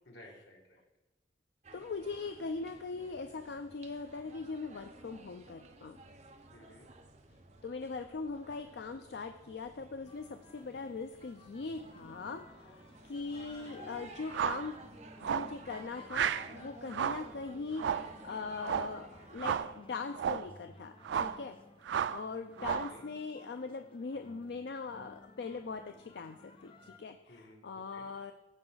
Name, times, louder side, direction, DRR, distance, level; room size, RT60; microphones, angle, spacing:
voice 1, 0.0-0.8 6.5-6.9 22.6-23.0 27.3-28.1, left 1 dB, 85° left, -1 dB, 2.1 m, -55 dB
sound 1, 1.6-19.7, right 2 dB, 40° right, 0.7 m, -55 dB
voice 2, 1.7-6.0 7.6-14.8 15.2-21.6 22.1-28.3, left 4 dB, 70° left, 7 dB, 0.4 m, -41 dB
sound 2, 10.1-27.0, left 2 dB, 30° left, 0.6 m, -57 dB
sound 3, 14.3-14.7 15.2-15.6 16.1-16.5 16.9-17.3 17.8-18.1 18.6-19.0 19.4-19.7 20.1-20.5 21.0-21.4 21.9-22.2 22.6-23.0, right 8 dB, 90° right, 0.3 m, -33 dB
14.5 x 5.0 x 3.9 m, 1.1 s
head